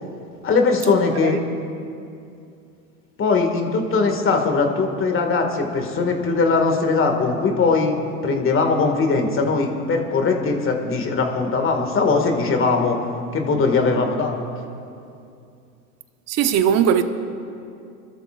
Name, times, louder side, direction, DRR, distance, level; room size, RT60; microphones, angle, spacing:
voice 1, 0.4-1.4 3.2-8.0 8.2-13.0 13.3-14.4, left 4 dB, 25° left, 2.2 m, -20 dB
voice 2, 16.3-17.0, right 9 dB, 35° right, 1.1 m, -18 dB
29.5 x 13.0 x 2.6 m
hypercardioid pair, 100°, 47 cm